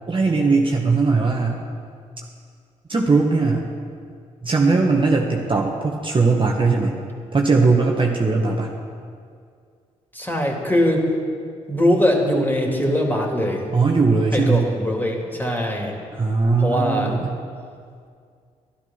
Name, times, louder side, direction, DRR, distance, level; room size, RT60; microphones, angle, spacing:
voice 1, 0.1-1.6 2.9-3.7 4.4-7.0 7.3-8.7 13.7-14.7 16.2-17.3, right 4 dB, 30° right, 0 dB, 1.5 m, -19 dB
voice 2, 10.1-11.0 11.7-13.6 14.3-16.0 16.6-17.2, equal, 10° left, 0 dB, 3.3 m, -21 dB
12.5 x 12.0 x 5.8 m, 2.2 s
hypercardioid pair, 45°, 16 cm